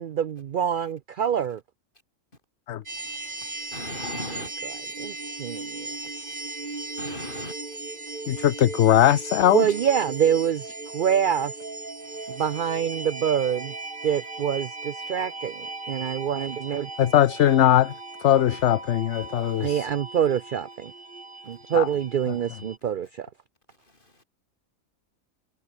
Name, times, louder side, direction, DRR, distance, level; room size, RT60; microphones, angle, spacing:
voice 1, 0.0-1.6 5.0-5.9 9.5-11.5 12.3-13.7 14.0-16.9 19.6-20.9 21.5-23.3, right 8 dB, 55° right, 0.5 m, -26 dB
sound 1, 2.9-22.8, right 3 dB, 35° right, 2.5 m, -37 dB
voice 2, 3.2-4.5 5.3-5.4 6.3-7.6 12.2-12.4 19.4-19.7 24.0-24.2, left 2 dB, 40° left, 4.8 m, -40 dB
voice 3, 8.3-9.6 17.0-17.9 18.2-19.9 21.7-21.9, left 11 dB, 60° left, 0.9 m, -20 dB
omnidirectional pair, 1.4 m